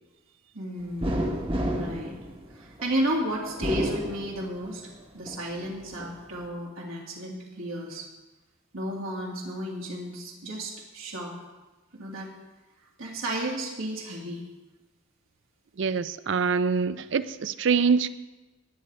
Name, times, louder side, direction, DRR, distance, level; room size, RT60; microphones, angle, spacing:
voice 1, 0.5-1.3 1.7-2.2 2.5-4.9 5.1-8.1 8.7-11.3 11.9-12.3 13.0-14.4, right 1 dB, 80° right, -3 dB, 2.0 m, -33 dB
sound 1, 1.0-2.9 3.5-4.8 5.3-6.1, right 1 dB, 25° right, 1.0 m, -30 dB
voice 2, 15.8-18.1, right 5 dB, 60° right, 14 dB, 0.4 m, -25 dB
18.5 x 8.4 x 3.3 m, 1.1 s
head